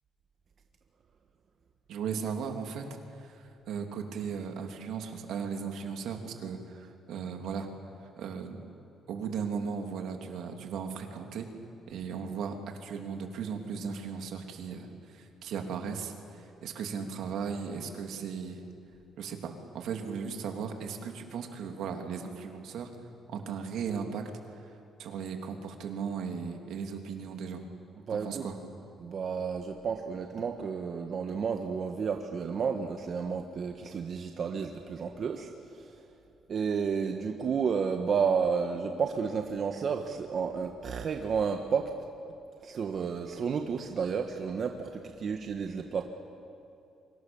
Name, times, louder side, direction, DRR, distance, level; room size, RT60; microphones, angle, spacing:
voice 1, 1.9-2.8 3.2-7.7 8.2-8.6 9.1-11.5 11.9-18.6 19.2-22.9 23.3-24.2 24.6-24.7 25.0-27.6 28.1-28.6, right 6 dB, 80° right, 4 dB, 3.1 m, -37 dB
voice 2, 28.1-28.4 29.0-35.5 36.5-41.9 42.6-46.0, right 6 dB, 55° right, 4 dB, 1.6 m, -31 dB
28.5 x 25.0 x 7.2 m, 2.7 s
cardioid pair, 90°, 0 cm